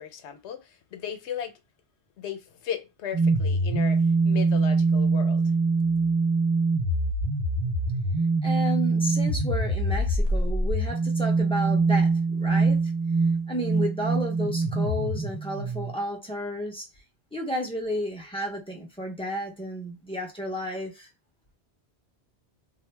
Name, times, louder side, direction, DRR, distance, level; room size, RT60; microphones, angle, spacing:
voice 1, 0.0-1.6 2.2-5.5, left 9 dB, 85° left, 0.9 m, -36 dB
sound 1, 3.1-16.0, right 3 dB, 60° right, 1.0 m, -24 dB
voice 2, 8.4-12.8 13.5-16.9 17.3-21.1, equal, 5° left, 0.7 m, -32 dB
2.7 x 2.0 x 3.2 m
omnidirectional pair, 1.1 m